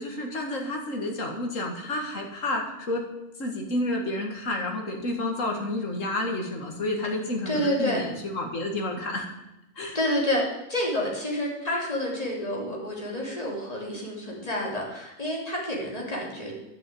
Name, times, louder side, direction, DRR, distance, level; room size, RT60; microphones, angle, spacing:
voice 1, 0.0-3.0 3.4-9.3 9.8-10.0, left 1 dB, 60° left, 2 dB, 2.3 m, -30 dB
voice 2, 7.4-8.0 9.9-10.4 10.7-16.5, left 1 dB, 25° left, -2 dB, 3.2 m, -29 dB
10.5 x 6.9 x 8.7 m, 0.92 s
omnidirectional pair, 1.5 m